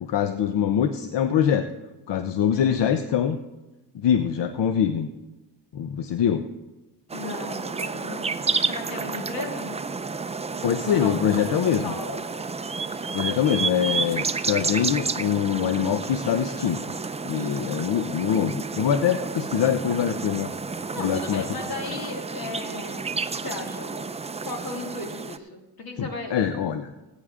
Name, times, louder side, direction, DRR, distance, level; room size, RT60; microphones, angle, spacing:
voice 1, 0.0-1.7 2.1-3.4 3.9-5.1 5.7-6.4 10.6-11.9 13.1-16.8 17.2-20.5 21.0-21.5 26.0-26.9, left 8 dB, 80° left, 9 dB, 0.7 m, -24 dB
voice 2, 2.5-2.8 7.1-8.3 8.6-9.8 10.8-11.6 11.8-12.2 20.9-23.2 23.4-24.0 24.4-26.3, left 2 dB, 60° left, 1 dB, 2.6 m, -36 dB
sound 1, 7.1-25.4, right 4 dB, 15° right, 0.4 m, -31 dB
18.0 x 9.2 x 3.7 m, 1.1 s
wide cardioid pair, 115°, 41 cm